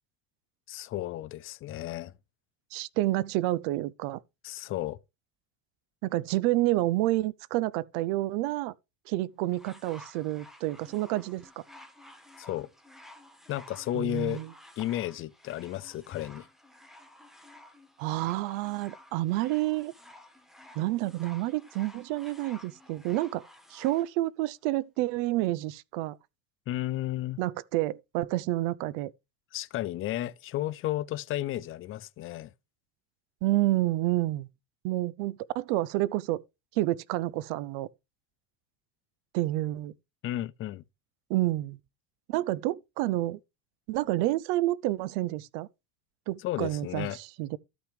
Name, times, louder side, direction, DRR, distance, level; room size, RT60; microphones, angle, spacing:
voice 1, 0.7-2.1 4.4-5.0 12.4-12.7 13.5-14.4 14.8-16.5 26.7-27.4 29.5-32.5 40.2-40.8 46.4-47.2, left 14 dB, 35° left, 0.5 m, -33 dB
voice 2, 2.7-4.2 6.0-8.7 9.1-11.5 13.9-14.5 18.0-19.9 20.8-23.4 23.7-26.2 27.4-29.1 33.4-34.5 34.8-36.4 36.8-37.9 39.3-39.9 41.3-41.8 42.3-43.4 43.9-45.7 46.3-47.6, right 17 dB, 75° right, 0.6 m, -29 dB
sound 1, 9.5-24.1 25.0-25.1, left 1 dB, ahead, 1.3 m, -53 dB
13.0 x 6.1 x 3.2 m
cardioid pair, 135°, 36 cm